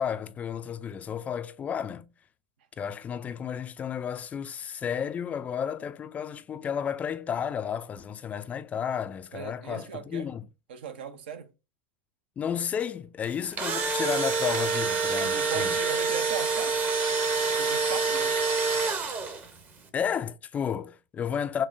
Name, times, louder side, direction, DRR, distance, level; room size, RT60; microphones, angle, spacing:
voice 1, 0.0-2.1 2.8-10.5 12.4-15.8 19.9-21.7, left 8 dB, 25° left, 0.3 m, -32 dB
voice 2, 9.3-10.3 10.7-11.5 15.2-16.8 17.6-18.4, right 7 dB, 65° right, 0.7 m, -38 dB
Engine / Drill, 13.3-19.6, right 4 dB, 30° right, 0.8 m, -27 dB
5.9 x 2.0 x 2.6 m
figure-of-eight pair, 90°, 6 cm